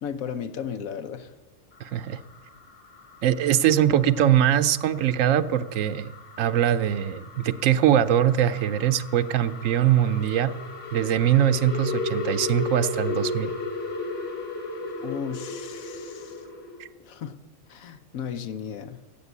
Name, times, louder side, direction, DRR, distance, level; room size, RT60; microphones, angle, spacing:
voice 1, 0.0-1.3 15.0-16.4 17.0-17.3 17.7-19.0, left 7 dB, 85° left, 11 dB, 1.3 m, -35 dB
sound 1, 1.7-16.9, left 3 dB, 60° left, 2.8 m, -36 dB
voice 2, 1.8-2.2 3.2-6.1 6.4-10.5 10.9-13.5 16.8-16.9, right 10 dB, 75° right, 13 dB, 1.0 m, -22 dB
14.0 x 8.6 x 8.1 m, 1.3 s
omnidirectional pair, 1.4 m